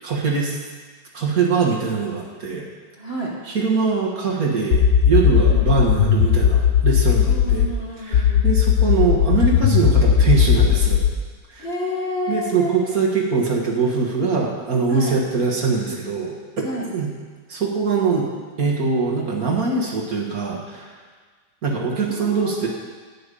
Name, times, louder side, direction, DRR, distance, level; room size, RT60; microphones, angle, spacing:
voice 1, 0.0-0.6 1.1-2.6 3.5-7.7 8.0-11.0 11.5-11.7 12.3-16.6 16.9-17.1 17.5-18.3 18.6-21.0 21.6-22.7, right 4 dB, 55° right, -2 dB, 1.9 m, -22 dB
voice 2, 3.0-3.3 5.5-5.7 7.3-8.5 11.6-12.8 14.9-15.1 16.6-16.8 22.0-22.7, equal, 35° left, -3 dB, 1.8 m, -29 dB
sound 1, 4.7-7.7 8.1-11.1, left 8 dB, 60° left, 1.0 m, -16 dB
10.0 x 5.8 x 8.4 m, 1.5 s
omnidirectional pair, 2.0 m